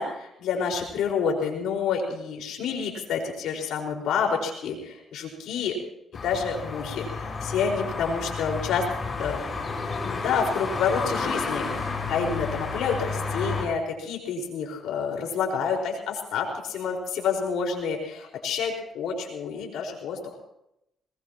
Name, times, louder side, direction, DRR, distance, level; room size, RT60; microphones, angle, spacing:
voice 1, 0.0-5.8 6.2-8.8 9.2-9.4 10.0-20.4, left 6 dB, 80° left, 1 dB, 5.0 m, -28 dB
sound 1, 6.1-13.6, left 4 dB, 35° left, 5.5 m, -31 dB
21.0 x 20.5 x 3.0 m, 0.82 s
cardioid pair, 90°, 0 cm